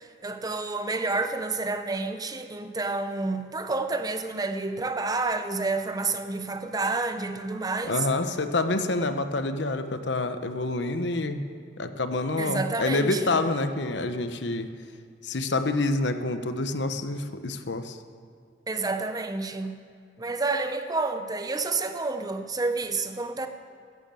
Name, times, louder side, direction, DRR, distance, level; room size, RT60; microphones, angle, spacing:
voice 1, 0.0-7.9 12.4-13.3 18.7-19.8 20.2-23.5, right 3 dB, 20° right, 8 dB, 0.7 m, -29 dB
voice 2, 7.8-11.4 11.8-14.7 15.2-18.0, left 2 dB, 70° left, 9 dB, 0.9 m, -27 dB
14.0 x 11.0 x 7.7 m, 2.2 s
head